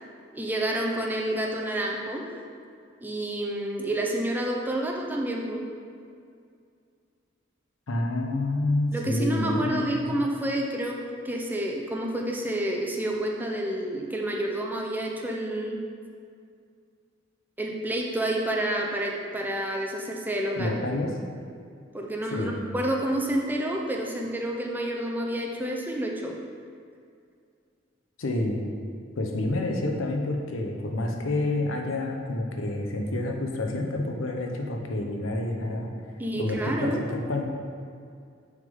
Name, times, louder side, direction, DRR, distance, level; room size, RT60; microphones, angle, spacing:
voice 1, 0.3-2.2 3.0-5.6 8.9-15.8 17.6-20.7 21.9-26.3 36.2-37.0, right 1 dB, 10° right, 0 dB, 0.5 m, -29 dB
voice 2, 7.9-10.0 20.6-21.1 22.3-22.6 28.2-28.6 29.2-35.9 36.3-37.4, left 2 dB, 85° left, 2 dB, 0.8 m, -28 dB
6.4 x 3.7 x 5.3 m, 2.3 s
head